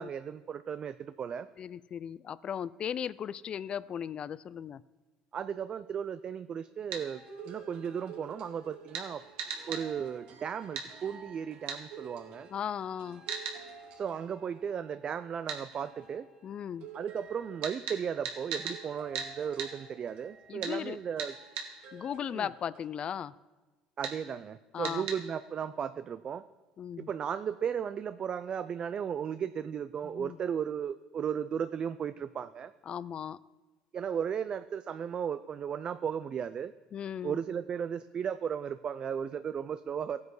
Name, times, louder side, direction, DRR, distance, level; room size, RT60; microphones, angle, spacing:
voice 1, 0.0-1.5 5.3-9.2 9.7-12.5 13.9-16.3 16.9-21.3 22.3-22.5 24.0-26.4 27.0-32.7 33.9-36.7 37.2-40.2, right 8 dB, 40° right, 12 dB, 0.5 m, -35 dB
voice 2, 1.6-4.8 12.5-13.2 16.4-16.9 20.5-21.0 21.9-23.4 24.7-25.1 26.8-27.1 30.0-30.4 32.9-33.4 36.9-37.4, left 8 dB, 45° left, 19 dB, 0.5 m, -37 dB
sound 1, 6.9-15.1 15.7-22.9, right 5 dB, 70° right, 3.2 m, -52 dB
sound 2, 6.9-7.0 8.9-9.1 9.4-9.8 10.7-10.9 11.7-11.8 13.3-13.6 15.5-15.6 17.6-18.8 19.1-19.3 19.6-19.7 20.6-20.7 21.2-21.7 24.0-24.2 24.8-25.2, right 6 dB, 90° right, 2.2 m, -36 dB
16.0 x 9.5 x 4.9 m, 1.2 s
supercardioid pair, 90°, 2 cm